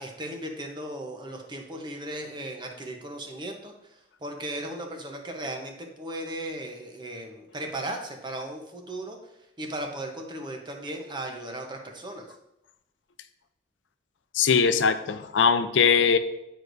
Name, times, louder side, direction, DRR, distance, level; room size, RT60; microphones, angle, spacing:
voice 1, 0.0-3.7 4.2-9.2 9.6-12.3, right 1 dB, 25° right, 2 dB, 0.8 m, -36 dB
voice 2, 14.3-16.2, left 6 dB, 80° left, 10 dB, 0.5 m, -21 dB
9.5 x 4.6 x 2.6 m, 0.89 s
head